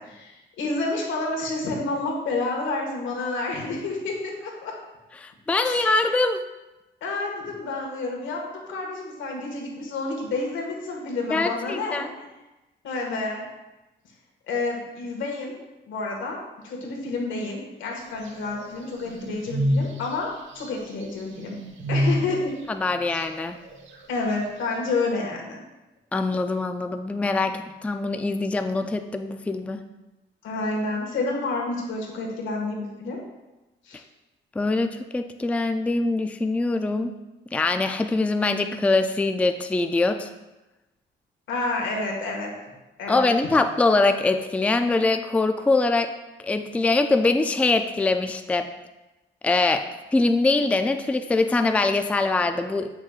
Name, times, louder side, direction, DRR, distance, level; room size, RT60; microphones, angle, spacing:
voice 1, 0.0-4.7 5.6-6.1 7.0-12.3 12.8-13.4 14.5-15.6 15.9-20.3 20.5-21.6 21.9-22.6 24.1-25.6 30.4-33.2 33.8-34.0 41.5-42.5 43.0-43.3, left 3 dB, 90° left, 0 dB, 1.6 m, -29 dB
voice 2, 5.2-6.4 11.3-12.1 22.7-23.6 26.1-29.8 34.6-37.1 37.5-40.3 43.1-46.1 46.4-48.7 49.4-52.9, left 3 dB, 5° left, 8 dB, 0.3 m, -23 dB
sound 1, 18.2-20.1 20.6-20.7 21.0-21.1 21.3-22.4 22.7-24.0, equal, 80° right, 1.1 m, -27 dB
9.0 x 6.1 x 2.4 m, 1.0 s
cardioid pair, 110°, 19 cm